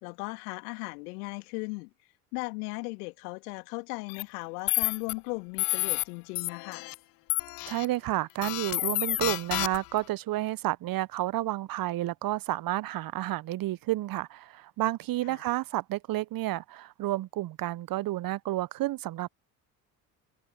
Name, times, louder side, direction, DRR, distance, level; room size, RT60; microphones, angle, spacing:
voice 1, 0.0-1.9 2.3-6.8 15.3-15.4, left 29 dB, 65° left, 2.8 m, -37 dB
sound 1, 4.1-4.2 4.7-5.1 5.6-6.0 6.4-7.0 7.3-7.9 8.4-10.0, left 26 dB, 50° left, 0.5 m, -30 dB
voice 2, 7.7-19.3, right 15 dB, 45° right, 1.2 m, -31 dB
figure-of-eight pair, 55°, 48 cm